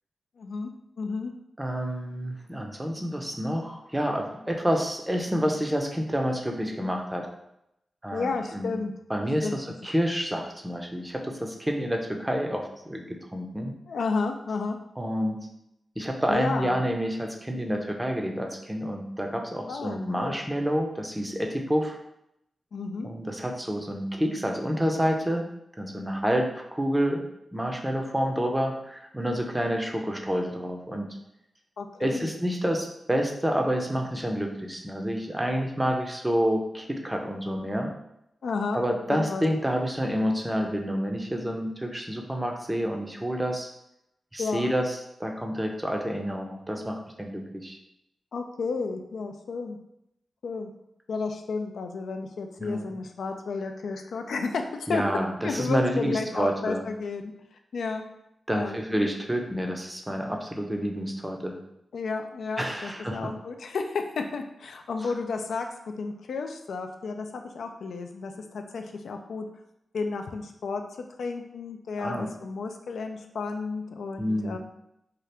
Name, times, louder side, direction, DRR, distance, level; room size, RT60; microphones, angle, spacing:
voice 1, 0.4-0.7 1.0-1.3 8.1-8.9 9.4-9.6 13.9-14.8 16.3-16.8 19.7-20.4 22.7-23.1 31.8-32.3 38.4-38.8 39.1-39.4 44.4-44.7 48.3-49.8 50.4-50.7 51.1-55.0 55.4-57.3 57.7-58.0 58.5-58.8 61.9-69.5 69.9-70.8 71.2-74.6, left 4 dB, 90° left, 5 dB, 0.3 m, -32 dB
voice 2, 1.6-7.3 8.0-8.8 9.1-13.7 15.0-15.4 16.0-22.0 23.0-25.5 25.8-27.2 27.5-31.1 32.0-37.9 38.7-43.7 44.3-47.8 52.6-52.9 54.9-56.8 58.5-61.6 62.6-63.3 72.0-72.3 74.2-74.6, equal, 10° right, 2 dB, 0.5 m, -28 dB
2.8 x 2.4 x 3.2 m, 0.81 s
wide cardioid pair, 90°, 0 cm